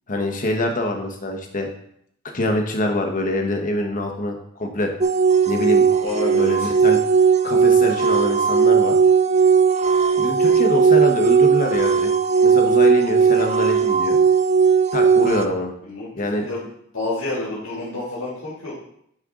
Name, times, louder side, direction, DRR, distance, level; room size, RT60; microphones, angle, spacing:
voice 1, 0.1-1.7 2.3-4.9 5.5-5.8 6.3-7.0 7.4-8.9 10.2-12.1 12.4-14.2 14.9-15.7 16.1-16.4, left 1 dB, 40° left, 3 dB, 1.2 m, -25 dB
sound 1, 5.0-15.4, right 6 dB, 35° right, 0.4 m, -17 dB
voice 2, 6.0-6.7 15.8-16.7 16.9-18.7, left 2 dB, 80° left, -7 dB, 2.6 m, -29 dB
10.0 x 4.5 x 3.8 m, 0.70 s
head